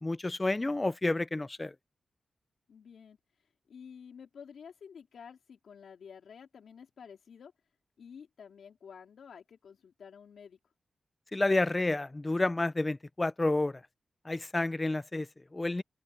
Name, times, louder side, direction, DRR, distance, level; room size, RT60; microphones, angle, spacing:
voice 1, 0.0-1.7 11.3-13.8 14.2-15.8, left 2 dB, 20° left, 0.5 m, -30 dB
voice 2, 2.7-3.2 3.7-7.5 8.0-10.6, left 7 dB, 85° left, 3.6 m, -51 dB
wide cardioid pair, 145°, 0 cm